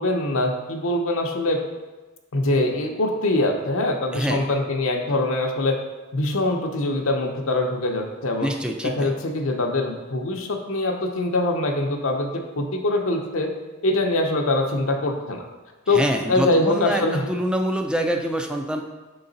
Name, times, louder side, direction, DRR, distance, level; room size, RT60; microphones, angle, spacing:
voice 1, 0.0-1.6 2.3-5.8 6.1-8.5 8.8-12.3 12.6-13.5 13.8-15.4 15.9-16.0 16.3-17.2, left 2 dB, 65° left, 2 dB, 0.7 m, -23 dB
voice 2, 4.1-4.5 8.4-9.1 15.9-18.8, right 1 dB, 5° right, 3 dB, 0.4 m, -25 dB
6.5 x 3.9 x 3.9 m, 1.2 s
head